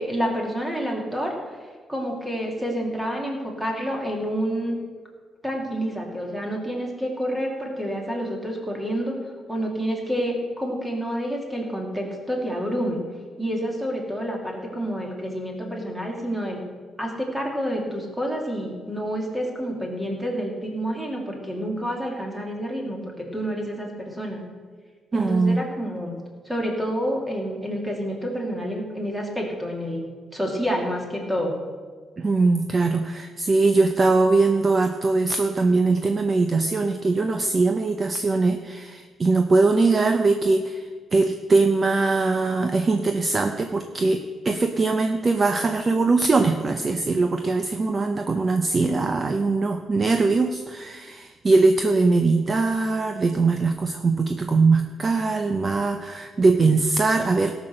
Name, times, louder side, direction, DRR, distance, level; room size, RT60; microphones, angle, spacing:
voice 1, 0.0-1.3 1.9-4.8 5.4-9.2 9.5-13.0 13.4-16.6 17.0-24.4 25.1-26.2 26.5-30.0 30.3-31.6, equal, 5° right, 0 dB, 2.1 m, -28 dB
voice 2, 25.1-25.6 32.2-57.5, right 3 dB, 25° right, 7 dB, 0.5 m, -21 dB
17.5 x 6.2 x 6.5 m, 1.5 s
cardioid pair, 175°, 0 cm